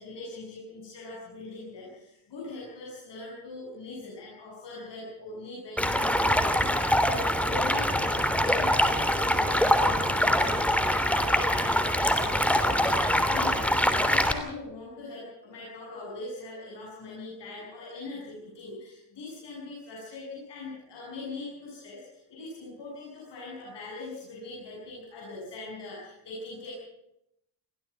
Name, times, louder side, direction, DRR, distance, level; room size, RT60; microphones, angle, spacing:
voice 1, 0.0-26.7, left 2 dB, 55° left, -4 dB, 7.6 m, -41 dB
Stream, 5.8-14.3, equal, 5° left, 3.1 m, -24 dB
23.0 x 16.5 x 7.4 m, 0.81 s
hypercardioid pair, 50°, 50 cm